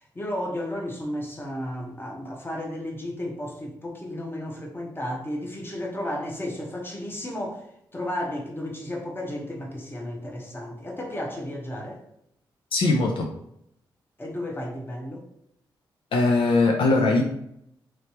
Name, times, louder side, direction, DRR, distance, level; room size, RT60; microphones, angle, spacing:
voice 1, 0.0-7.6 7.9-12.0 14.2-15.2, left 1 dB, 25° left, 0 dB, 1.0 m, -33 dB
voice 2, 12.7-13.3 16.1-17.2, left 3 dB, 75° left, 1 dB, 0.5 m, -20 dB
3.1 x 3.0 x 2.9 m, 0.74 s
cardioid pair, 60°, 9 cm